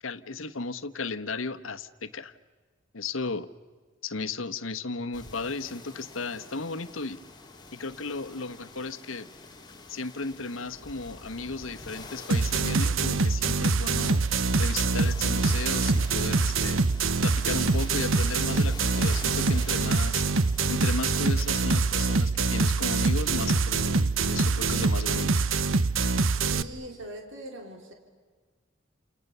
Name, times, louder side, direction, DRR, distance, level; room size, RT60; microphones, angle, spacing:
voice 1, 0.0-2.3 2.9-3.5 4.0-7.2 7.7-9.3 9.9-14.2 14.6-16.8 17.2-20.3 20.7-25.4, left 3 dB, 90° left, 11 dB, 1.2 m, -35 dB
sound 1, 5.1-22.2, left 3 dB, 20° left, 3.5 m, -46 dB
sound 2, 12.3-26.6, right 4 dB, 90° right, 1.1 m, -25 dB
voice 2, 26.5-27.9, right 1 dB, 70° right, 2 dB, 4.0 m, -41 dB
30.0 x 28.0 x 6.9 m, 1.5 s
head